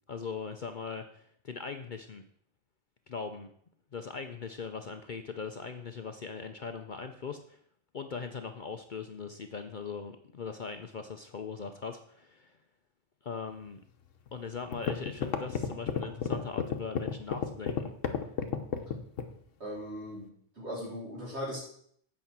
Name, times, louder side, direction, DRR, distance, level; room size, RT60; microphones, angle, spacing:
voice 1, 0.1-2.2 3.1-3.5 3.9-7.6 7.9-12.6 13.2-13.8 14.3-17.9, left 5 dB, 50° left, 7 dB, 0.7 m, -40 dB
sound 1, 14.3-14.4 14.7-19.4, left 7 dB, 90° left, 1.3 m, -31 dB
voice 2, 19.6-21.6, equal, 60° right, -5 dB, 4.2 m, -39 dB
8.4 x 5.5 x 7.3 m, 0.64 s
omnidirectional pair, 1.3 m